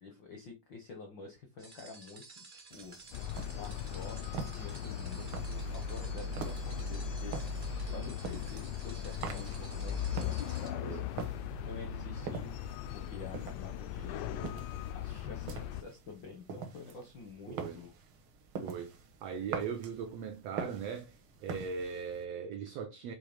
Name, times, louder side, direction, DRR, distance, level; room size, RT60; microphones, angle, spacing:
voice 1, 0.0-2.2 2.7-2.9 3.5-7.3 7.9-11.0 11.6-12.6 12.9-14.4 14.9-17.9, left 4 dB, 75° left, 1.0 m, -48 dB
sound 1, 1.6-10.7, right 3 dB, 45° right, 0.6 m, -53 dB
sound 2, 2.7-22.2, right 5 dB, 65° right, 1.3 m, -45 dB
sound 3, 3.1-15.8, left 7 dB, 90° left, 2.2 m, -38 dB
voice 2, 17.5-17.8 18.6-18.9 19.2-21.1 21.4-23.1, right 6 dB, 85° right, 1.4 m, -39 dB
6.7 x 3.0 x 5.1 m
omnidirectional pair, 3.8 m